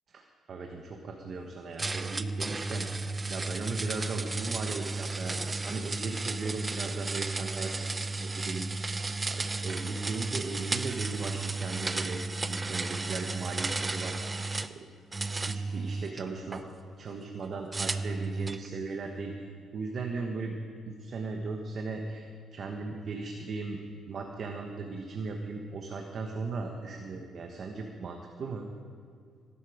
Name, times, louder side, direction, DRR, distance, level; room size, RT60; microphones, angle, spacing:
voice 1, 0.1-12.2 12.5-14.4 14.7-14.9 15.4-16.6 17.0-19.3 19.7-20.5 20.9-22.3 22.5-23.8 24.1-28.7, right 4 dB, 55° right, 3 dB, 1.4 m, -37 dB
sound 1, 1.8-14.7 15.1-16.6 17.7-18.7, right 3 dB, 25° right, 0.6 m, -33 dB
17.0 x 12.0 x 5.1 m, 2.1 s
cardioid pair, 90°, 0 cm